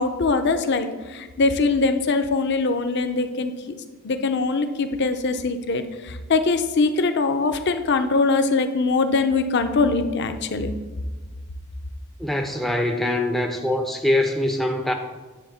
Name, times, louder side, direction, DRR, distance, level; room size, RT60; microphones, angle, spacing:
voice 1, 0.0-3.5 4.0-10.7, left 3 dB, 55° left, 8 dB, 0.6 m, -22 dB
voice 2, 12.2-14.9, left 1 dB, ahead, 3 dB, 0.4 m, -23 dB
9.9 x 3.6 x 7.0 m, 1.3 s
head